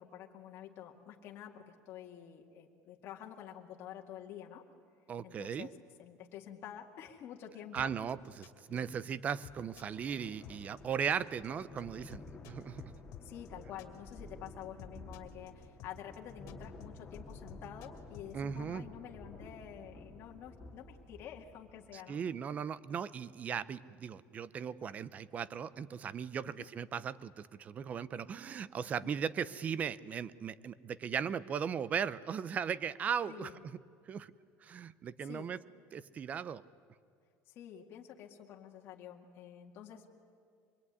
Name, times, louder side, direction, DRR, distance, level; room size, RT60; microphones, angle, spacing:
voice 1, 0.0-4.7 5.2-5.7 6.0-7.9 8.7-9.1 13.2-22.2 26.4-26.7 28.8-29.1 33.3-33.6 35.2-35.5 37.5-40.1, left 10 dB, 45° left, -1 dB, 2.1 m, -49 dB
voice 2, 5.1-5.7 7.7-12.9 18.3-18.9 21.9-33.8 34.1-34.3 34.6-35.6 35.9-36.6, right 7 dB, 25° right, 17 dB, 0.6 m, -37 dB
sound 1, 7.7-18.3, left 9 dB, 65° left, 2.5 m, -53 dB
sound 2, 9.6-21.9, left 2 dB, 15° left, 3.0 m, -52 dB
25.0 x 22.0 x 9.7 m, 2.3 s
cardioid pair, 160°, 6 cm